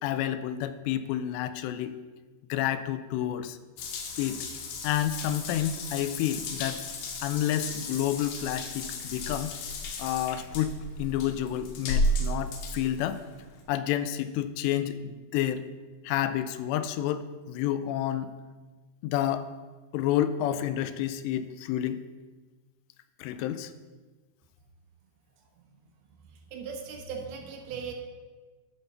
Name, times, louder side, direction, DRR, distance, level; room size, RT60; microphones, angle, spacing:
voice 1, 0.0-2.0 2.5-3.6 4.2-4.5 4.8-6.8 7.2-9.5 10.0-13.2 13.7-15.6 16.0-18.3 19.0-19.5 19.9-22.0 23.2-23.7, left 11 dB, 85° left, 12 dB, 2.7 m, -29 dB
Water tap faucet / Bathtub (filling or washing) / Drip, 3.8-13.6, left 1 dB, 70° left, 2.9 m, -34 dB
voice 2, 26.5-27.9, right 6 dB, 75° right, 2 dB, 2.8 m, -38 dB
12.0 x 4.3 x 6.6 m, 1.3 s
omnidirectional pair, 4.9 m